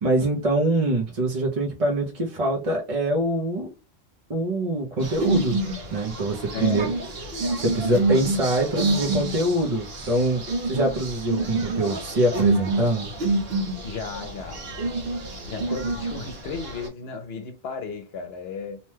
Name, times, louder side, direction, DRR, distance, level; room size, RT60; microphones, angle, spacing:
voice 1, 0.0-3.7 4.3-5.6 5.9-6.9 7.5-13.1, right 1 dB, 40° right, 0.6 m, -24 dB
sound 1, 5.0-16.9, right 2 dB, 65° right, 1.1 m, -28 dB
voice 2, 6.5-6.9 13.8-14.6 15.5-18.8, left 5 dB, 70° left, 0.9 m, -34 dB
2.8 x 2.2 x 3.1 m
omnidirectional pair, 1.1 m